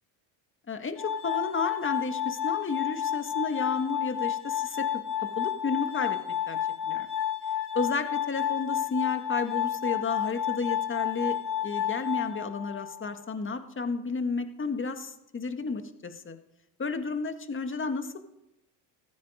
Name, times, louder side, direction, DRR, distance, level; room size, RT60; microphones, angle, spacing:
voice 1, 0.7-5.0 5.4-6.2 6.5-6.6 6.9-7.1 7.7-11.4 11.6-16.4 16.8-18.2, left 4 dB, 25° left, 7 dB, 2.0 m, -32 dB
Glass, 1.0-13.0, left 9 dB, 65° left, 4.8 m, -31 dB
15.0 x 14.5 x 5.2 m, 0.87 s
supercardioid pair, 85°, 46 cm